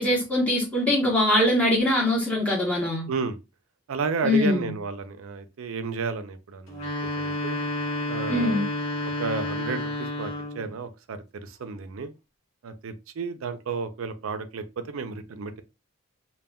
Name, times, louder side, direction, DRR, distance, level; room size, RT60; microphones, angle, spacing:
voice 1, 0.0-3.1 4.2-4.7 8.3-8.6, left 1 dB, 5° left, 0.7 m, -22 dB
voice 2, 3.9-6.9 7.2-7.6 8.1-8.6 9.2-12.1 12.6-15.6, right 4 dB, 75° right, 0.4 m, -32 dB
sound 1, 6.7-10.7, left 1 dB, 75° left, 0.9 m, -30 dB
2.2 x 2.1 x 3.4 m
head